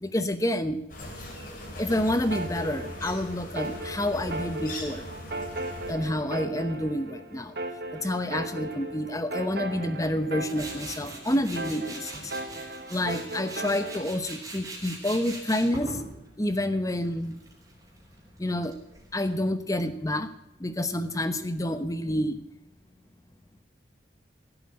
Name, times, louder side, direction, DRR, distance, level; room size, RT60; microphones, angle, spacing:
voice 1, 0.0-0.8 1.8-5.1 5.9-7.5 7.9-12.3 12.9-16.0 16.4-17.4 18.4-18.8 19.1-20.3 20.6-22.4, left 1 dB, 20° left, 11 dB, 0.9 m, -28 dB
sound 1, 0.9-5.9, left 1 dB, 45° left, 4.1 m, -40 dB
sound 2, 1.9-14.0, right 2 dB, 55° right, 1.4 m, -37 dB
Tools, 10.5-19.3, right 2 dB, 20° right, 3.8 m, -42 dB
15.5 x 8.1 x 8.6 m, 0.86 s
head